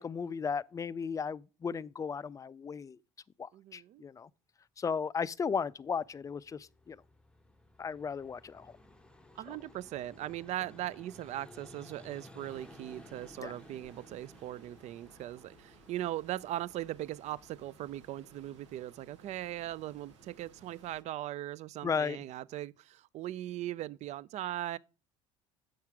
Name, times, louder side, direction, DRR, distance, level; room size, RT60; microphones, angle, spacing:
voice 1, 0.0-3.0 3.4-4.3 4.8-7.0 7.8-8.7 9.5-9.6 13.4-13.5 21.8-22.2, left 6 dB, 20° left, 0.4 m, -35 dB
voice 2, 3.5-4.0 9.4-24.8, right 14 dB, 50° right, 0.4 m, -39 dB
Vehicle, 5.7-20.2, left 1 dB, 5° left, 0.8 m, -57 dB
sound 1, 12.4-21.0, right 4 dB, 85° right, 1.1 m, -60 dB
7.8 x 5.7 x 4.7 m
hypercardioid pair, 70°, 15 cm